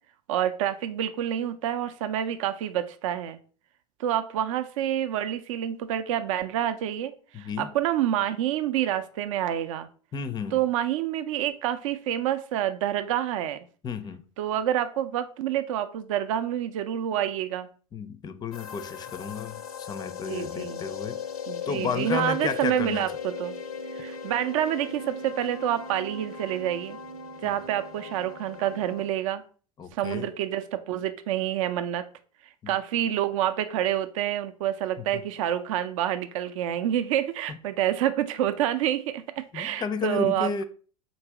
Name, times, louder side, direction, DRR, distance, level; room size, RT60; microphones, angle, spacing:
voice 1, 0.3-3.4 4.0-9.9 10.5-13.7 14.4-17.7 20.2-20.8 21.5-23.6 23.9-27.0 27.4-29.4 29.9-32.0 32.7-40.6, right 11 dB, 60° right, 0.5 m, -28 dB
voice 2, 7.3-7.7 10.1-10.6 13.8-14.2 17.9-21.2 21.7-23.1 29.8-30.3 32.6-32.8 35.0-35.2 37.5-37.6 39.5-40.6, left 5 dB, 20° left, 0.4 m, -32 dB
sound 1, 18.5-29.1, left 5 dB, 75° left, 0.5 m, -38 dB
4.0 x 2.6 x 4.6 m
figure-of-eight pair, 75°, 19 cm